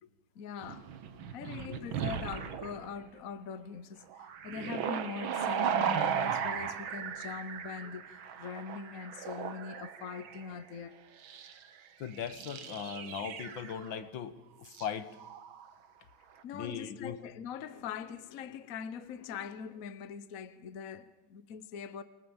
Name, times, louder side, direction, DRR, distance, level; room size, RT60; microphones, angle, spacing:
voice 1, 0.3-0.9 1.1-11.0 16.4-22.0, left 7 dB, 50° left, 1.2 m, -42 dB
sound 1, 0.6-2.9 4.1-10.5 11.2-11.6 12.1-13.9 14.7-14.9 15.2-15.7, right 8 dB, 80° right, 2.1 m, -36 dB
voice 2, 12.0-15.1 16.5-17.2, left 7 dB, 75° left, 2.0 m, -39 dB
28.5 x 20.5 x 7.2 m
omnidirectional pair, 2.2 m